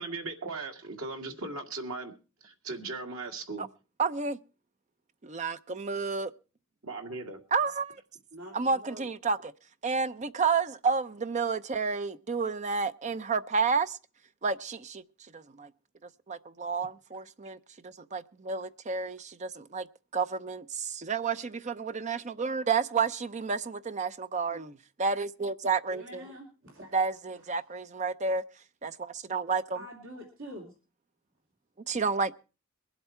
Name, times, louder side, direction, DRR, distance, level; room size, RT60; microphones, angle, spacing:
voice 1, 0.0-2.1 2.4-3.6 6.8-7.4, right 3 dB, 80° right, 2.0 m, -38 dB
voice 2, 4.0-4.4 5.2-6.3 7.5-8.0 8.5-9.5 9.8-14.0 14.4-15.0 15.3-15.7 16.3-17.6 17.8-19.9 20.1-26.2 26.9-28.4 28.8-29.8 31.9-32.3, right 5 dB, 35° right, 0.6 m, -30 dB
voice 3, 8.3-9.1 25.9-27.0 29.7-30.7, equal, 65° right, 2.7 m, -45 dB
22.5 x 8.1 x 4.4 m
head